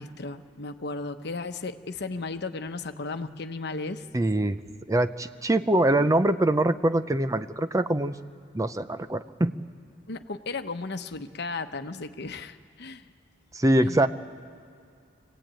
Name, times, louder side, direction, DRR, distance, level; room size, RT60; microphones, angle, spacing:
voice 1, 0.0-4.1 10.1-13.1 13.8-14.1, left 3 dB, 60° left, 8 dB, 1.0 m, -35 dB
voice 2, 4.1-4.6 4.9-8.1 8.5-9.5 13.5-14.1, right 1 dB, 20° right, 11 dB, 0.5 m, -23 dB
25.5 x 17.0 x 9.0 m, 2.4 s
head